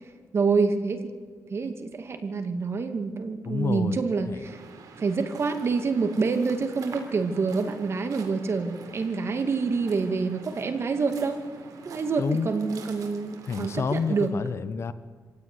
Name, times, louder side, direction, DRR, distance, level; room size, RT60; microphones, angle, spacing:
voice 1, 0.3-1.1 1.5-4.6 5.0-11.4 11.8-14.3, right 4 dB, 45° right, 7 dB, 2.3 m, -27 dB
voice 2, 3.4-4.0 4.3-4.5 12.2-12.5 13.5-14.9, left 5 dB, 50° left, 13 dB, 1.1 m, -29 dB
Waves surf, 4.4-14.3, right 4 dB, 80° right, 3.7 m, -46 dB
25.5 x 16.5 x 9.8 m, 1.5 s
cardioid pair, 110°, 6 cm